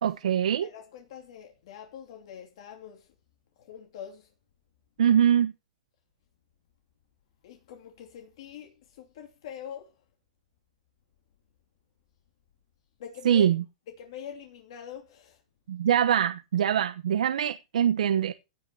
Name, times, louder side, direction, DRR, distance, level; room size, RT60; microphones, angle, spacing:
voice 1, 0.0-0.7 5.0-5.5 13.2-13.6 15.7-18.3, right 9 dB, 80° right, 1.0 m, -23 dB
voice 2, 0.6-3.1 3.6-4.3 7.4-9.9 13.0-13.5 13.9-15.4, left 9 dB, 50° left, 2.9 m, -44 dB
17.0 x 5.9 x 6.9 m
supercardioid pair, 175°, 4 cm